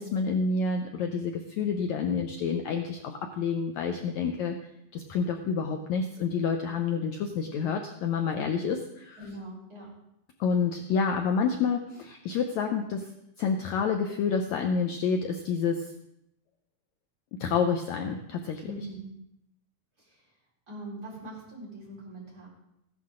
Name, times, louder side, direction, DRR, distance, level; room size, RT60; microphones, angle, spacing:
voice 1, 0.0-4.5 4.9-9.2 10.4-13.1 13.4-15.9 17.4-18.7, left 5 dB, 80° left, 4 dB, 1.6 m, -28 dB
voice 2, 9.2-9.9 18.6-19.1 20.0-20.3 20.7-22.5, right 1 dB, 25° right, -6 dB, 5.1 m, -42 dB
15.5 x 11.5 x 3.8 m, 0.81 s
omnidirectional pair, 4.3 m